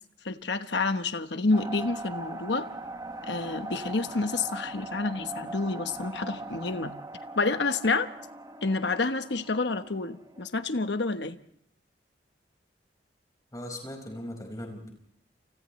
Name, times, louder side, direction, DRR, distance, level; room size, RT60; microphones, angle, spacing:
voice 1, 0.2-2.7 3.3-6.9 7.4-8.1 8.6-11.4, left 3 dB, 65° left, 9 dB, 1.1 m, -28 dB
sound 1, 1.5-10.5, right 2 dB, 20° right, 1.3 m, -41 dB
voice 2, 13.5-14.9, left 1 dB, 20° left, 3 dB, 5.1 m, -39 dB
29.5 x 29.5 x 3.2 m, 0.66 s
head